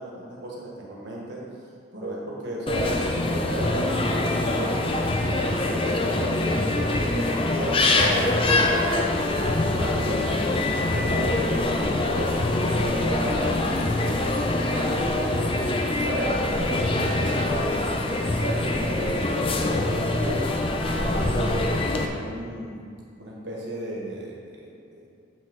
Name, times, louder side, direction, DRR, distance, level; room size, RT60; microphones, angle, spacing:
voice 1, 0.0-1.4 1.9-6.4 6.7-10.2 10.9-15.5 16.0-20.5 21.0-22.8 23.2-24.6 24.9-25.1, right 1 dB, 60° right, -4 dB, 1.5 m, -34 dB
sound 1, 2.7-22.1, left 2 dB, 25° left, 0.5 m, -24 dB
8.0 x 6.2 x 3.9 m, 2.2 s
head